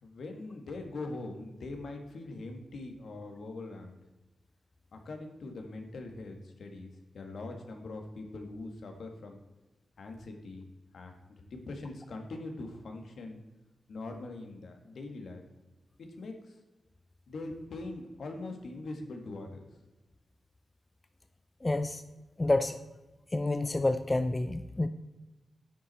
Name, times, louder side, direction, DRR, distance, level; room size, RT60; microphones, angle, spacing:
voice 1, 0.0-4.0 4.9-9.4 10.0-10.7 10.9-13.4 13.9-15.4 16.0-16.6 17.3-19.6, left 2 dB, 75° left, 4 dB, 1.8 m, -42 dB
voice 2, 21.6-22.0 22.4-22.8 23.3-24.9, left 2 dB, 20° left, 10 dB, 0.5 m, -28 dB
10.0 x 8.2 x 4.3 m, 1.1 s
wide cardioid pair, 115°, 0 cm